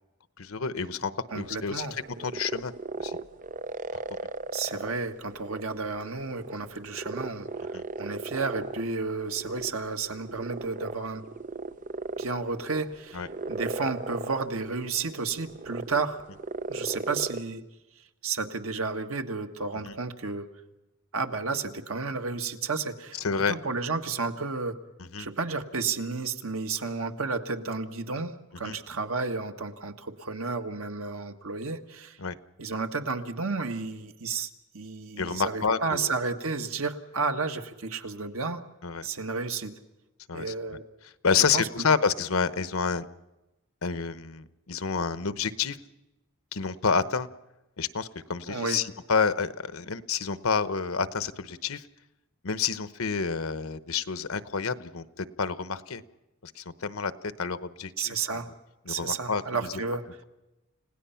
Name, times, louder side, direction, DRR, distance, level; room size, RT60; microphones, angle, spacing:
voice 1, 0.4-1.9 2.2-2.7 3.0-3.2 7.7-7.8 13.1-13.3 19.8-19.9 23.2-23.5 25.0-25.3 28.6-28.8 32.2-32.3 35.2-36.1 38.8-39.1 40.3-40.4 41.2-43.1 43.8-45.8 46.5-47.3 47.8-51.8 52.4-56.0 56.4-57.1 57.4-58.1 58.9-59.4, left 5 dB, 85° left, 13 dB, 1.0 m, -29 dB
voice 2, 1.3-1.9 4.5-7.5 8.0-11.2 12.2-16.2 16.7-17.6 18.2-20.5 21.1-23.2 23.5-24.8 25.2-32.2 32.6-38.6 39.0-39.7 40.3-40.8 41.5-41.9 48.5-48.8 58.0-58.5 58.9-60.0, right 4 dB, 90° right, 6 dB, 1.6 m, -32 dB
sound 1, 1.4-17.4, right 3 dB, 40° right, 0.6 m, -38 dB
30.0 x 17.5 x 5.8 m, 0.99 s
head